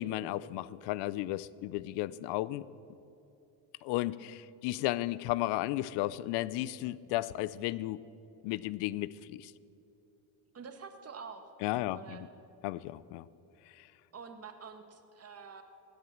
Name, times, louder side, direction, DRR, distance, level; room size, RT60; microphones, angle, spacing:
voice 1, 0.0-2.7 3.8-8.0 8.4-9.5 11.6-12.3 12.6-13.3 13.7-13.9, left 16 dB, 75° left, 20 dB, 0.6 m, -34 dB
voice 2, 10.5-11.5 11.9-12.2 14.1-15.6, right 5 dB, 35° right, 7 dB, 1.6 m, -47 dB
16.5 x 10.0 x 7.3 m, 2.8 s
supercardioid pair, 80°, 42 cm